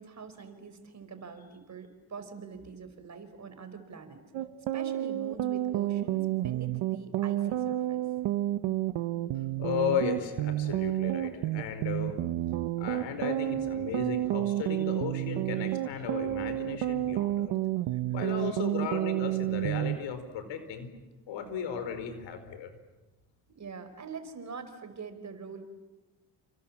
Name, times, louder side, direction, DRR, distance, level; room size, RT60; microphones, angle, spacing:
voice 1, 0.0-4.2 4.7-8.0 17.9-18.0 18.3-18.6 23.5-25.6, right 5 dB, 40° right, 9 dB, 4.6 m, -44 dB
sound 1, 4.3-20.0, right 14 dB, 80° right, 1.2 m, -30 dB
voice 2, 9.6-12.2 12.8-17.5 18.1-20.9 21.3-22.7, left 7 dB, 85° left, 9 dB, 4.6 m, -35 dB
29.5 x 27.5 x 7.3 m, 1.1 s
cardioid pair, 100°, 43 cm